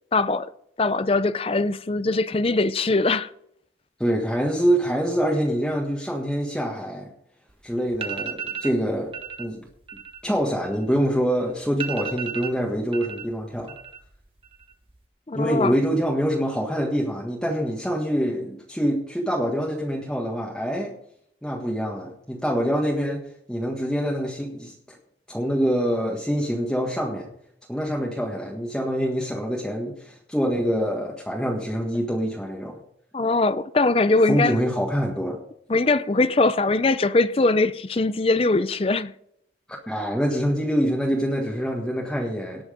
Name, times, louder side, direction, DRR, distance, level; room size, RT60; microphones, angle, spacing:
voice 1, 0.1-0.5 0.8-3.3 15.3-15.7 33.1-34.6 35.7-39.1, left 3 dB, 30° left, 0.5 m, -21 dB
voice 2, 4.0-7.1 7.6-9.7 10.2-13.8 15.3-21.0 21.4-23.2 23.5-25.0 25.3-27.3 27.7-32.8 34.3-35.4 39.7-42.6, equal, 5° left, 1.6 m, -25 dB
sound 1, 7.5-7.6 7.9-8.8 9.1-9.4 9.8-11.2 11.5-11.6 11.8-13.2 13.5-14.1 14.4-15.0, right 7 dB, 30° right, 1.2 m, -33 dB
18.5 x 6.3 x 5.1 m
head